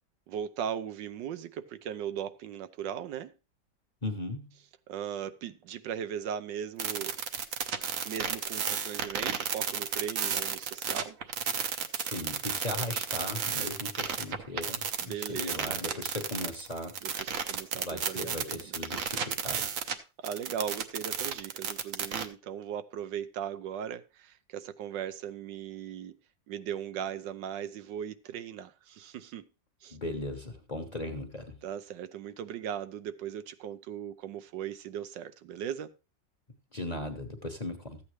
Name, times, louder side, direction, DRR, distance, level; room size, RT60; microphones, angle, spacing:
voice 1, 0.3-3.3 4.9-7.2 8.0-11.2 15.0-15.8 17.0-18.8 20.2-26.2 26.5-29.5 29.8-30.0 31.6-35.9, right 9 dB, 80° right, 1.3 m, -38 dB
voice 2, 4.0-4.5 11.9-17.0 17.7-19.7 29.9-31.6 36.7-38.0, left 1 dB, 30° left, 1.0 m, -38 dB
sound 1, 6.8-20.0 20.2-22.3, right 7 dB, 55° right, 1.0 m, -32 dB
14.0 x 8.5 x 3.1 m
omnidirectional pair, 1.9 m